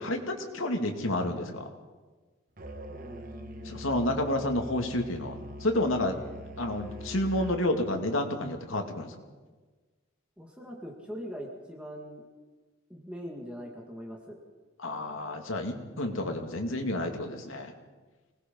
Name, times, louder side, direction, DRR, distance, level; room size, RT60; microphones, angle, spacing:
voice 1, 0.0-1.7 3.6-6.2 6.6-9.2 14.8-17.7, left 1 dB, 80° left, 4 dB, 2.5 m, -30 dB
Musical instrument, 2.6-7.7, equal, 40° right, 1.4 m, -43 dB
voice 2, 2.9-4.0 10.4-12.2 12.9-14.4, equal, 5° right, 0 dB, 2.1 m, -42 dB
25.0 x 19.0 x 5.5 m, 1.3 s
head